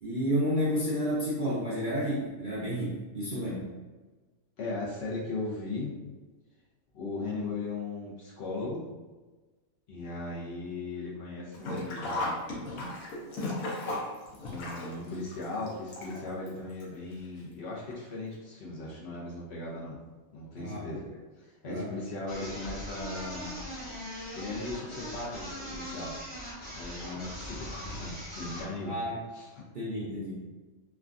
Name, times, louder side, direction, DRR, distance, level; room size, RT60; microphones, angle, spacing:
voice 1, 0.0-3.6 20.6-21.0 21.7-21.9 28.9-29.2 29.7-30.4, equal, 55° right, -8 dB, 0.5 m, -31 dB
voice 2, 4.6-5.9 6.9-8.9 9.9-12.4 14.5-20.0 20.3-21.0 21.4-23.6 24.3-26.2 26.8-29.0 29.3-29.6, left 2 dB, 60° left, -5 dB, 0.9 m, -37 dB
Sink (filling or washing), 11.5-16.5 16.8-16.9 17.9-18.0 18.3-18.4, left 2 dB, 80° left, 1.1 m, -35 dB
sound 1, 22.3-28.7, equal, 35° left, 0.5 m, -41 dB
3.3 x 2.2 x 2.5 m, 1.3 s
omnidirectional pair, 1.4 m